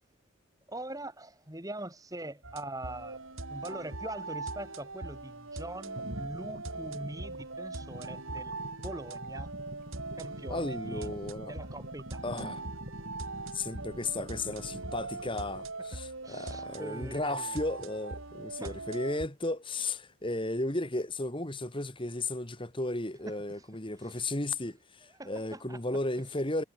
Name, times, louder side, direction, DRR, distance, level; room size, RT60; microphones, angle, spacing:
voice 1, 0.7-3.2 3.5-8.5 8.8-9.5 10.2-11.1 11.5-12.2 16.2-17.6 18.6-18.7 23.3-23.4 24.0-24.1 25.2-25.8, right 1 dB, 15° right, 3.7 m, -42 dB
sound 1, 2.4-19.3, right 3 dB, 70° right, 3.9 m, -41 dB
sound 2, 3.7-3.8 6.0-15.8 17.7-18.3 19.1-19.2 19.8-19.9, equal, 45° right, 7.9 m, -46 dB
voice 2, 10.5-11.6 12.2-12.6 13.5-26.6, left 2 dB, 25° left, 2.3 m, -34 dB
head